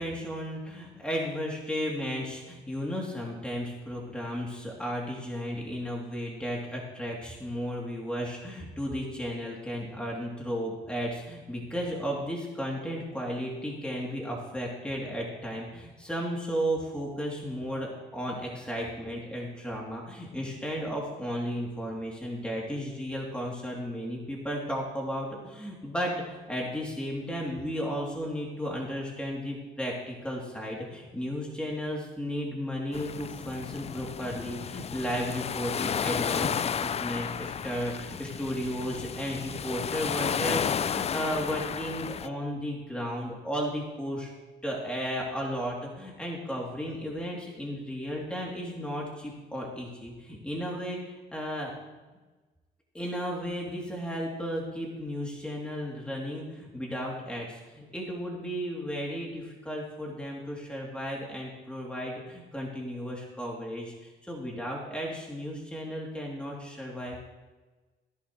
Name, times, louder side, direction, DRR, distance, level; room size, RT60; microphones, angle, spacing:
voice 1, 0.0-44.3 44.6-51.7 52.9-67.2, equal, 5° left, -3 dB, 3.2 m, -34 dB
sound 1, 32.9-42.3, left 7 dB, 30° left, 0.3 m, -32 dB
19.0 x 11.0 x 3.3 m, 1.2 s
cardioid pair, 90°, 20 cm